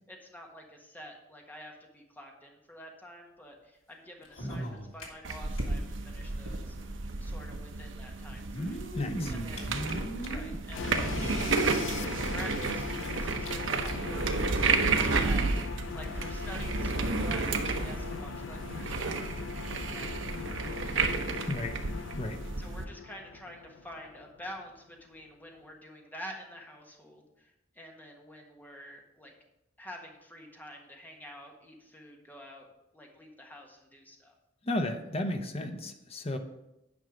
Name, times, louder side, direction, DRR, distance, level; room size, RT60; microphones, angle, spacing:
voice 1, 0.1-6.7 7.2-8.8 9.3-10.0 10.2-21.0 22.6-29.3 29.8-32.7 32.9-34.3, equal, 10° left, 1 dB, 1.4 m, -48 dB
sound 1, 4.2-5.6 5.9-6.0 6.2-6.3 7.3-7.4 8.3-10.6 11.2-11.3 11.6-11.7 12.1-13.1 13.4-13.5 13.8-14.0 14.8-14.9, equal, 90° left, 2.0 m, -38 dB
sound 2, 5.2-22.9, right 3 dB, 70° right, 0.8 m, -32 dB
voice 2, 8.9-9.3 21.5-21.8 22.2-22.4 34.6-36.4, left 1 dB, 30° left, 6 dB, 0.9 m, -33 dB
sound 3, 10.7-24.6, left 4 dB, 65° left, 0.5 m, -40 dB
9.6 x 5.5 x 5.1 m, 0.90 s
head